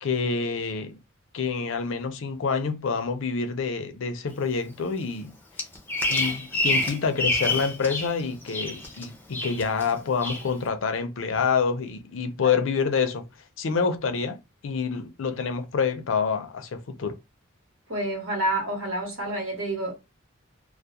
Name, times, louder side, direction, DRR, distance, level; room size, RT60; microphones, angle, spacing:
voice 1, 0.0-1.0 1.3-5.4 6.1-13.2 13.6-14.4 14.6-17.1, left 5 dB, 70° left, 0.5 m, -27 dB
Bird vocalization bird call bird song, 5.6-8.1 8.4-9.0 9.3-9.9 10.2-10.5, left 2 dB, 10° left, 0.4 m, -27 dB
voice 2, 17.9-19.9, right 1 dB, 70° right, 1.0 m, -28 dB
2.3 x 2.0 x 2.8 m
head